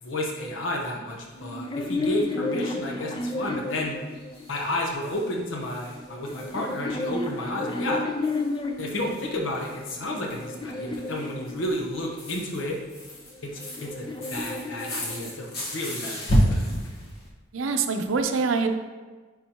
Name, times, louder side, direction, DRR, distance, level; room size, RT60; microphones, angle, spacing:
voice 1, 0.0-4.0 4.5-8.0 8.8-12.8 13.4-16.7, left 1 dB, 80° left, 0 dB, 0.8 m, -31 dB
sound 1, 1.2-1.6 1.9-2.0 2.2-2.3 2.7-2.8 3.1-3.2 3.5-3.6 4.1-9.3 9.6-17.3, equal, 55° left, 1.3 m, -32 dB
sound 2, 1.3-4.7 5.7-9.1 9.7-12.1 13.2-15.6, left 2 dB, 25° left, 0.4 m, -32 dB
voice 2, 17.5-18.7, right 4 dB, 90° right, 7 dB, 0.5 m, -24 dB
9.8 x 3.7 x 2.9 m, 1.4 s
head